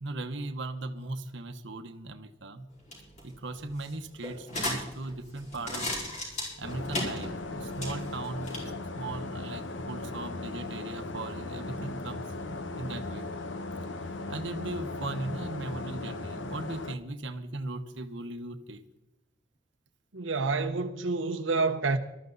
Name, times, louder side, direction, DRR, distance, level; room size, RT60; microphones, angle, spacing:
voice 1, 0.0-2.7 3.2-5.9 6.6-13.3 14.3-18.8, right 2 dB, 65° right, 1.1 m, -38 dB
sound 1, 2.7-8.6, left 1 dB, 40° left, 4.8 m, -37 dB
sound 2, 6.6-17.0, left 2 dB, 70° left, 1.0 m, -38 dB
voice 2, 20.1-22.0, right 3 dB, 90° right, 0.9 m, -28 dB
19.0 x 13.0 x 4.0 m
head